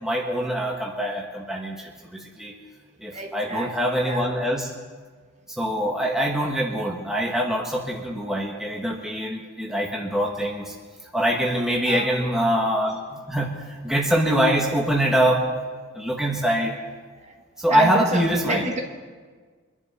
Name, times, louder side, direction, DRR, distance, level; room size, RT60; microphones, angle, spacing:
voice 1, 0.0-2.6 3.0-4.7 5.5-10.7 11.1-15.4 15.9-16.8 17.6-18.6, equal, ahead, 1.2 m, -24 dB
voice 2, 3.1-4.3 11.8-12.3 17.3-17.4 17.7-18.8, right 2 dB, 35° right, 1.6 m, -30 dB
24.0 x 10.5 x 4.2 m
head